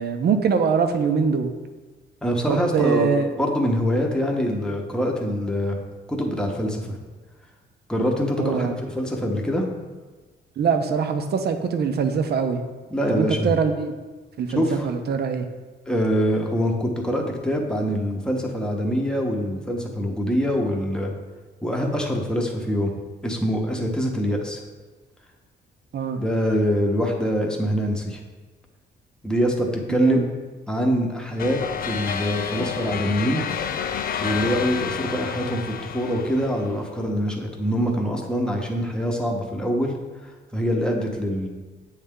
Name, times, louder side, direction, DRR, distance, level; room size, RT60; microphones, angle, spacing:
voice 1, 0.0-1.5 2.5-3.3 8.4-8.8 10.6-12.6 13.1-14.0 14.4-15.5 25.9-26.2 29.9-30.3, right 6 dB, 55° right, 7 dB, 0.6 m, -23 dB
voice 2, 2.2-5.8 6.1-7.0 7.9-9.6 12.9-13.6 14.6-14.9 15.9-21.1 21.6-22.9 23.2-24.6 26.2-28.2 29.2-30.2 30.7-33.4 34.2-39.9 40.5-41.5, equal, 5° left, 0 dB, 0.9 m, -24 dB
sound 1, 31.4-36.9, left 7 dB, 50° left, 0.4 m, -30 dB
7.9 x 3.2 x 3.7 m, 1.3 s
cardioid pair, 90°, 20 cm